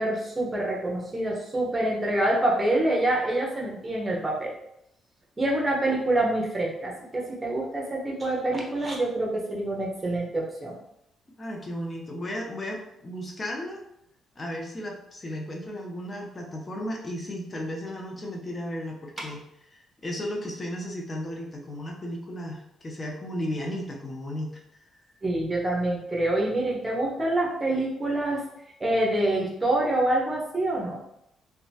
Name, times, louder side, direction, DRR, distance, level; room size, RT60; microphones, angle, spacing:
voice 1, 0.0-4.5 5.4-10.7 25.2-28.4 28.8-31.0, right 1 dB, 20° right, -3 dB, 0.9 m, -26 dB
voice 2, 11.4-13.8 14.4-19.4 19.7-24.5, equal, 25° left, 0 dB, 0.6 m, -34 dB
2.9 x 2.2 x 2.7 m, 0.78 s
cardioid pair, 90°, 0 cm